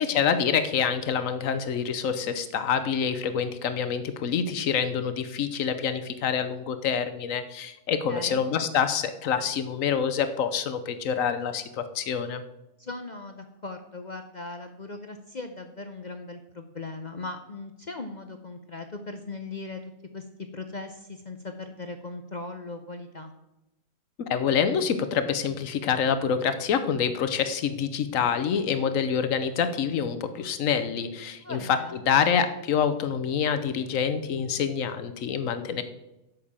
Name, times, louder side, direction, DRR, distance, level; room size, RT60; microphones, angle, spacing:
voice 1, 0.0-12.4 24.2-31.8 32.0-35.8, left 7 dB, 60° left, 10 dB, 1.2 m, -26 dB
voice 2, 8.1-8.4 12.8-19.8 20.1-20.3 20.5-23.3 31.4-32.0, left 3 dB, 40° left, 6 dB, 0.6 m, -39 dB
8.5 x 6.6 x 7.3 m, 0.94 s
omnidirectional pair, 1.6 m